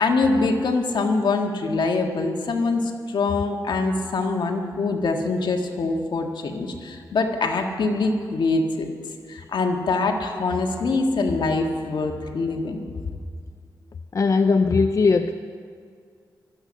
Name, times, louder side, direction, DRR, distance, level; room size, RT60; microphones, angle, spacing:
voice 1, 0.0-8.9 9.3-12.8, left 3 dB, 75° left, 3 dB, 1.7 m, -24 dB
voice 2, 14.1-15.3, left 4 dB, 45° left, 8 dB, 0.5 m, -19 dB
24.5 x 8.5 x 6.4 m, 2.1 s
wide cardioid pair, 105°, 8 cm